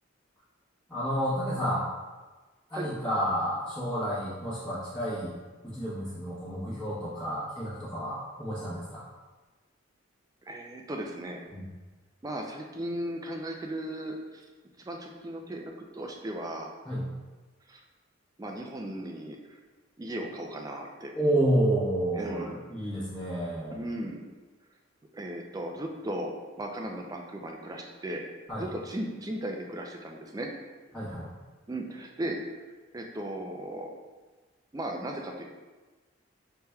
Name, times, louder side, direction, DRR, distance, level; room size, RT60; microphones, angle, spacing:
voice 1, 0.9-1.9 2.7-5.3 5.6-9.0 11.5-11.6 16.8-17.1 21.1-23.9 28.5-28.7 30.9-31.3, right 1 dB, 10° left, -12 dB, 1.0 m, -30 dB
voice 2, 10.5-11.4 12.2-14.4 14.8-16.7 17.7-17.8 18.4-19.6 20.0-21.1 22.2-22.6 23.7-24.3 25.1-28.2 28.6-30.5 31.7-32.6 32.9-33.9 34.7-35.4, right 1 dB, 20° right, 2 dB, 0.4 m, -36 dB
5.7 x 3.3 x 2.2 m, 1.3 s
head